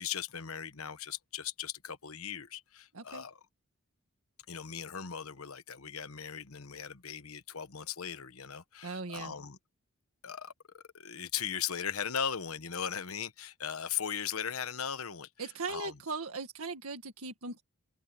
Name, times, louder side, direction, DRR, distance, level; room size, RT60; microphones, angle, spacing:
voice 1, 0.0-3.4 4.5-9.6 10.2-16.0, left 8 dB, 85° left, 1.1 m, -38 dB
voice 2, 8.8-9.3 15.4-17.6, right 4 dB, 90° right, 1.9 m, -39 dB
open air
head